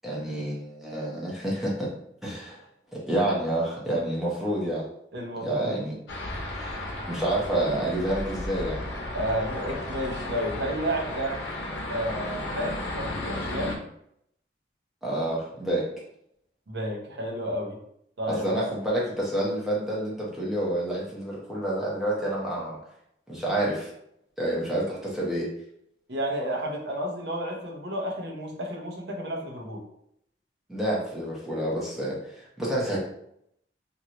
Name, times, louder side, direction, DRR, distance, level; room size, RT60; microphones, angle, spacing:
voice 1, 0.0-1.9 2.2-2.6 2.9-4.9 5.4-5.9 6.5-8.8 15.0-15.8 18.3-22.8 23.3-23.9 24.4-25.5 30.7-33.0, right 1 dB, ahead, -6 dB, 0.9 m, -28 dB
voice 2, 5.1-5.8 9.1-11.4 11.9-13.8 16.7-17.8 18.2-18.6 26.1-29.8, equal, 70° right, 0 dB, 0.8 m, -31 dB
sound 1, 6.1-13.8, left 1 dB, 85° left, 0.6 m, -34 dB
2.9 x 2.6 x 2.9 m, 0.74 s
head